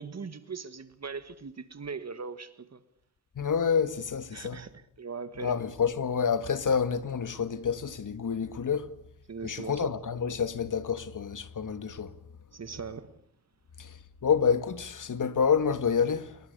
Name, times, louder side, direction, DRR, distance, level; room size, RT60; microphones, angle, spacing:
voice 1, 0.0-2.8 4.3-5.6 9.3-9.9 12.5-13.2, right 5 dB, 45° right, 1.8 m, -40 dB
voice 2, 3.4-4.6 5.4-8.9 9.4-12.1 13.8-14.0 14.2-16.4, left 6 dB, 55° left, 1.9 m, -28 dB
28.5 x 22.5 x 6.8 m
wide cardioid pair, 100°, 37 cm